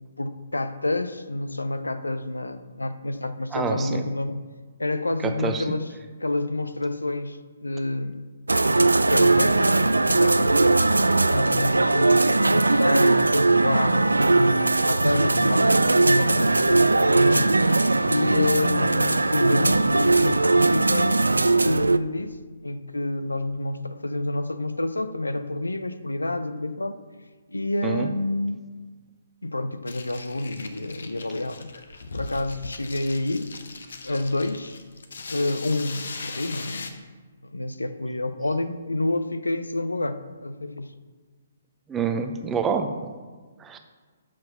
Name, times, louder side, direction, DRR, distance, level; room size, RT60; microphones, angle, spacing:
voice 1, 0.2-4.4 4.8-5.9 6.2-8.2 8.8-10.9 11.3-14.4 14.9-17.6 18.1-21.3 21.6-22.4 22.6-27.0 27.5-28.6 29.4-31.7 32.1-33.5 34.0-34.8 35.3-37.0 37.4-40.9, left 2 dB, 80° left, 11 dB, 0.6 m, -28 dB
voice 2, 3.5-4.0 5.2-5.6 27.8-28.1 41.9-42.9 43.6-43.8, right 6 dB, 15° right, 6 dB, 0.7 m, -27 dB
sound 1, 8.5-22.0, right 2 dB, 80° right, 0.3 m, -20 dB
sound 2, 29.9-36.9, left 3 dB, 65° left, 0.9 m, -39 dB
7.6 x 6.0 x 5.5 m, 1.4 s
figure-of-eight pair, 130°, 0 cm